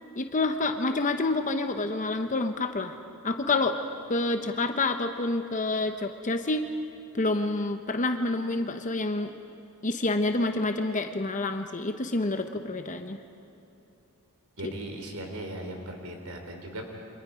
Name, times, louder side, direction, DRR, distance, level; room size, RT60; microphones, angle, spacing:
voice 1, 0.2-3.0 3.2-3.8 4.1-6.7 7.1-9.3 9.8-13.2 14.6-14.7, left 2 dB, 35° left, 6 dB, 1.0 m, -28 dB
voice 2, 14.6-16.8, right 1 dB, 80° right, 3 dB, 3.6 m, -38 dB
29.0 x 25.5 x 5.1 m, 3.0 s
head